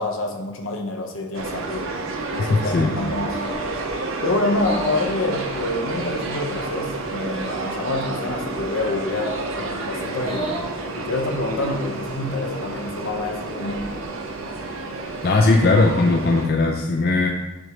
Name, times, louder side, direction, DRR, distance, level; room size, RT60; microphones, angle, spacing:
voice 1, 0.0-1.9 2.4-3.5 4.2-10.6 11.0-14.0, left 2 dB, 70° left, 3 dB, 0.8 m, -27 dB
sound 1, 1.3-16.5, right 3 dB, 75° right, 0.7 m, -30 dB
sound 2, 2.1-2.6 3.2-3.7 4.5-5.1 6.0-6.5 7.4-7.7 9.1-9.5 10.1-10.7 11.4-11.9, right 2 dB, 90° right, 1.6 m, -33 dB
voice 2, 2.4-3.0 15.2-17.3, left 3 dB, 50° left, 2 dB, 0.4 m, -18 dB
6.0 x 3.1 x 5.0 m, 1.1 s
head